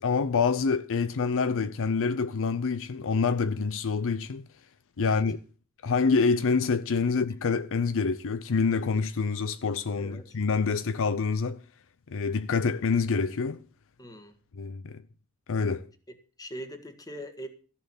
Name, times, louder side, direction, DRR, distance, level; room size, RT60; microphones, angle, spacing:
voice 1, 0.0-4.4 5.0-5.4 5.8-11.6 12.1-13.6 14.5-15.0 15.5-15.9, left 4 dB, 60° left, 0.6 m, -26 dB
voice 2, 10.0-10.3 14.0-14.3 16.4-17.5, equal, 15° left, 1.7 m, -41 dB
14.0 x 7.0 x 7.2 m
head